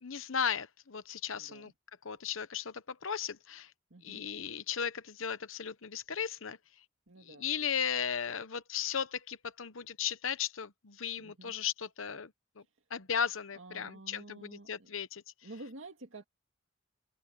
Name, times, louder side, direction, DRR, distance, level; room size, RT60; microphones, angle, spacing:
voice 1, 0.0-1.7 2.0-3.7 4.0-6.6 7.3-12.3 12.9-15.2, left 7 dB, 75° left, 1.0 m, -36 dB
voice 2, 1.3-1.7 3.9-4.2 7.1-7.5 11.2-11.5 13.5-14.9 15.4-16.2, right 2 dB, 70° right, 2.0 m, -50 dB
open air
head